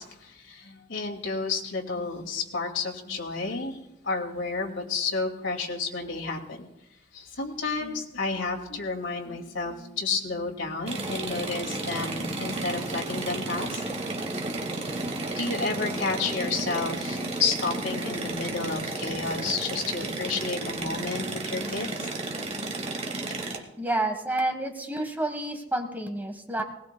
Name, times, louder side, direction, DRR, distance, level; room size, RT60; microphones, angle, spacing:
voice 1, 0.0-6.7 7.1-14.4 15.4-22.1, left 4 dB, 90° left, 2 dB, 2.2 m, -31 dB
sound 1, 10.9-23.6, right 2 dB, 35° right, 1.8 m, -32 dB
voice 2, 23.8-26.6, right 2 dB, 10° right, 5 dB, 1.4 m, -29 dB
20.0 x 19.5 x 2.3 m, 0.88 s
head